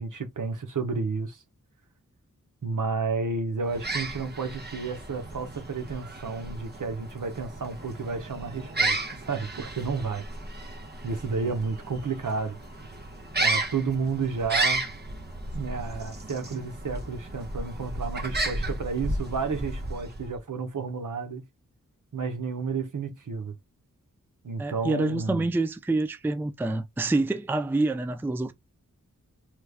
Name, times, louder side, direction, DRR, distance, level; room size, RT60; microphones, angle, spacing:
voice 1, 0.0-1.4 2.6-10.2 11.0-12.6 13.4-14.8 15.5-21.4 22.1-23.6 24.4-25.5, right 4 dB, 70° right, 0.9 m, -31 dB
sound 1, 3.6-20.4, right 2 dB, 30° right, 0.9 m, -33 dB
voice 2, 24.6-28.5, right 2 dB, 5° right, 0.4 m, -27 dB
3.1 x 2.3 x 3.3 m
wide cardioid pair, 50°, 33 cm